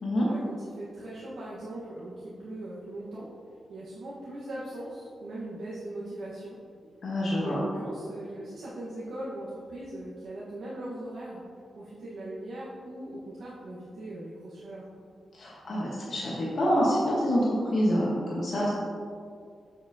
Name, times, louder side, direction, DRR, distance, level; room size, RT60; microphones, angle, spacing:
voice 1, 0.3-3.3 3.7-6.6 7.4-11.4 11.7-14.8, right 1 dB, 75° right, -9 dB, 1.3 m, -39 dB
voice 2, 7.0-7.6 15.4-17.5 17.7-18.7, equal, 60° left, -5 dB, 1.2 m, -26 dB
7.5 x 7.0 x 2.8 m, 2.2 s
wide cardioid pair, 130°, 0 cm